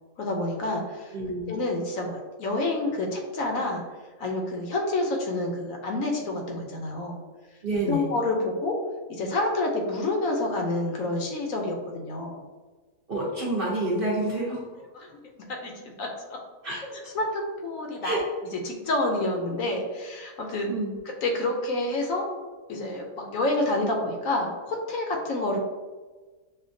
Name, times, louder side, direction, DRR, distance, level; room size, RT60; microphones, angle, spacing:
voice 1, 0.2-1.2 1.5-3.8 4.2-7.2 7.8-8.7 9.1-12.4 14.9-15.1 15.6-16.1 16.8-18.2 18.6-20.7 21.2-22.3 22.7-25.6, left 2 dB, 65° left, 1 dB, 1.0 m, -28 dB
voice 2, 1.1-1.5 7.6-8.1 13.1-14.7 16.6-16.8 18.0-18.2 20.7-21.0, right 2 dB, 50° right, -5 dB, 0.7 m, -28 dB
6.2 x 2.2 x 2.6 m, 1.3 s
omnidirectional pair, 1.6 m